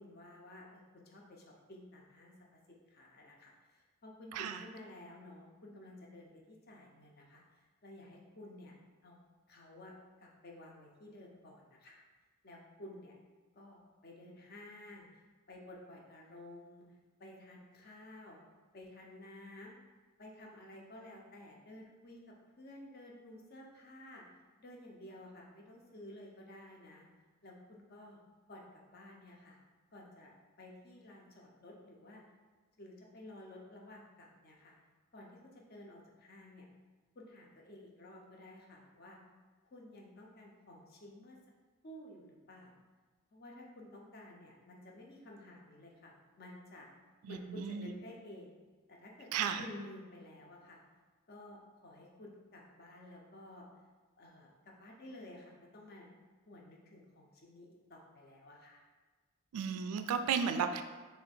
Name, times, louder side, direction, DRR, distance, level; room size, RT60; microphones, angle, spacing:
voice 1, 0.0-2.4 2.7-8.8 9.0-9.2 9.5-9.9 10.2-12.0 12.4-13.1 13.6-15.2 15.5-16.9 17.2-18.4 18.7-19.8 20.2-24.2 24.6-27.1 27.4-28.2 28.5-29.6 29.9-30.3 30.6-32.2 32.8-34.7 35.1-36.7 37.1-39.2 39.7-41.4 41.8-42.8 43.3-46.9 47.3-48.6 48.9-50.8 51.3-53.7 54.2-56.1 56.5-58.8, left 1 dB, 45° left, -1 dB, 0.5 m, -53 dB
voice 2, 47.3-47.9 49.3-49.6 59.5-60.8, right 7 dB, 85° right, 8 dB, 0.3 m, -34 dB
3.2 x 2.7 x 4.2 m, 1.4 s
head